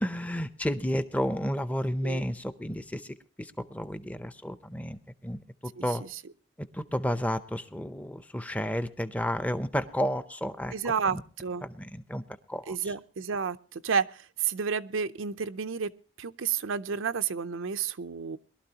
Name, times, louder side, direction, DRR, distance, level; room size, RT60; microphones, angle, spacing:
voice 1, 0.0-3.1 3.4-5.4 5.8-6.0 6.7-10.7 11.1-11.2 11.6-12.2 12.5-12.9, equal, 5° left, 11 dB, 0.6 m, -31 dB
voice 2, 5.8-6.2 10.7-11.6 12.7-15.9 16.2-18.4, right 6 dB, 75° right, 11 dB, 0.6 m, -31 dB
22.0 x 12.5 x 2.8 m, 0.37 s
head